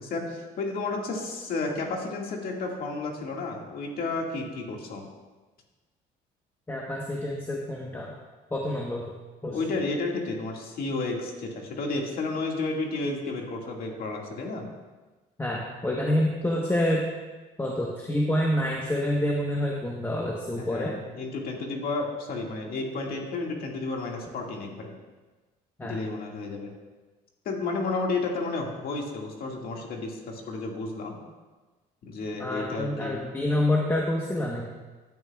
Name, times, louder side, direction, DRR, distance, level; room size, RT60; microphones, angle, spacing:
voice 1, 0.0-5.0 9.5-14.6 20.6-24.9 25.8-26.7 27.5-31.2 32.1-33.2, left 3 dB, 60° left, 0 dB, 2.0 m, -32 dB
voice 2, 6.7-8.1 8.5-9.1 9.4-9.7 15.4-17.1 17.6-20.9 25.8-26.0 32.4-34.7, left 1 dB, 15° left, -2 dB, 1.1 m, -27 dB
15.0 x 9.3 x 2.4 m, 1.3 s
cardioid pair, 110°, 17 cm